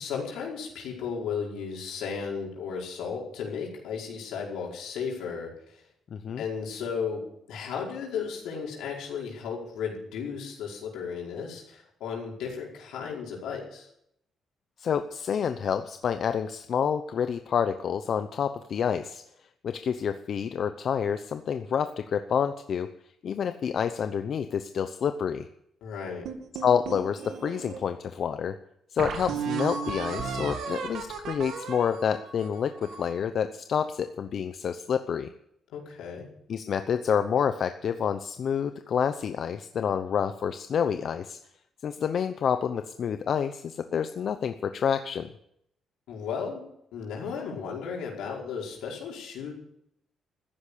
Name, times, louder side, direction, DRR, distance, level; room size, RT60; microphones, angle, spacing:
voice 1, 0.0-5.8 6.4-7.2 7.5-13.9 25.8-26.3 35.7-36.3 46.1-49.5, left 6 dB, 85° left, -2 dB, 5.2 m, -35 dB
voice 2, 6.1-6.4 14.8-19.2 19.6-22.9 23.2-25.5 26.6-28.6 28.9-35.3 36.5-41.4 41.8-45.3, left 7 dB, 60° left, 9 dB, 0.8 m, -28 dB
sound 1, 26.3-27.8 28.4-28.5 29.0-33.2, right 6 dB, 80° right, 2.3 m, -34 dB
14.0 x 10.5 x 8.5 m, 0.75 s
cardioid pair, 90°, 0 cm